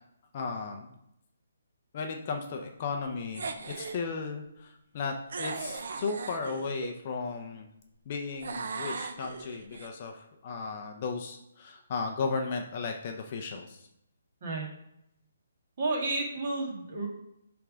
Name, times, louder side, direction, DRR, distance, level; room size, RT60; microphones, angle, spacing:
voice 1, 0.3-0.9 1.9-7.7 8.1-13.9, left 4 dB, 25° left, 3 dB, 0.6 m, -35 dB
sound 1, 3.3-4.0 5.3-6.9 8.4-9.9, right 4 dB, 50° right, 0.7 m, -38 dB
voice 2, 14.4-14.7 15.8-17.1, right 2 dB, 35° right, -1 dB, 1.7 m, -31 dB
7.4 x 3.5 x 5.0 m, 0.80 s
hypercardioid pair, 175°, 0 cm